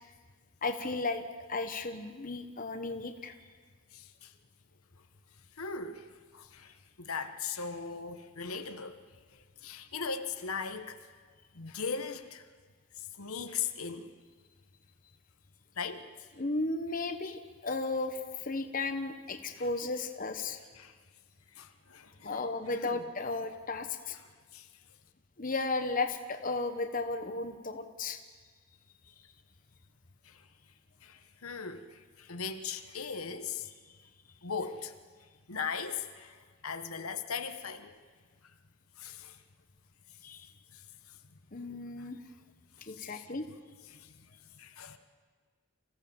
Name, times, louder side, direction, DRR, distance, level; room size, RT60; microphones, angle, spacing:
voice 1, 0.6-3.4 16.4-20.6 22.2-24.2 25.4-28.2 40.2-40.5 41.5-42.2 42.9-43.4, left 3 dB, 40° left, 7 dB, 1.1 m, -34 dB
voice 2, 3.9-4.3 5.6-9.0 9.6-11.0 11.5-12.4 13.0-14.1 15.8-16.0 19.6-19.7 20.7-21.0 21.5-23.0 24.5-24.7 30.2-30.4 31.0-33.7 34.4-34.9 35.5-37.9 39.0-39.4 40.7-40.8 41.6-41.7 42.0-42.1 42.9-43.3 43.9-44.3 44.5-45.0, left 5 dB, 80° left, 8 dB, 1.2 m, -39 dB
26.5 x 15.5 x 7.2 m, 1.5 s
head